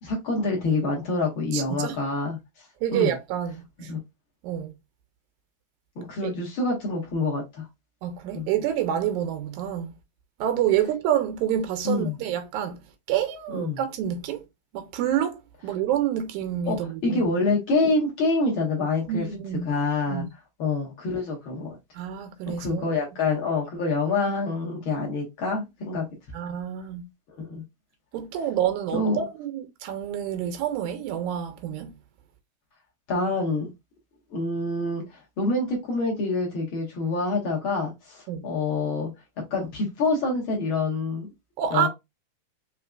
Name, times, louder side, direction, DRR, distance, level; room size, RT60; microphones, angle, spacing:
voice 1, 0.0-2.4 2.9-3.1 3.9-4.0 6.0-7.7 8.3-8.5 11.9-12.2 13.5-13.8 16.7-16.8 17.0-19.3 19.7-20.3 20.6-21.8 22.5-26.1 27.3-27.6 28.9-29.2 33.1-33.7 34.3-39.1 39.5-41.3 41.7-41.9, left 3 dB, 50° left, 1.9 m, -26 dB
voice 2, 1.5-1.9 2.8-3.9 4.4-4.7 6.2-6.3 8.0-9.9 10.4-12.8 13.1-14.5 14.7-17.2 19.1-19.7 20.1-20.3 22.0-23.2 26.3-27.0 28.1-31.9 38.3-38.4 41.6-41.9, right 10 dB, 85° right, 2.1 m, -28 dB
5.0 x 3.1 x 2.3 m
omnidirectional pair, 3.4 m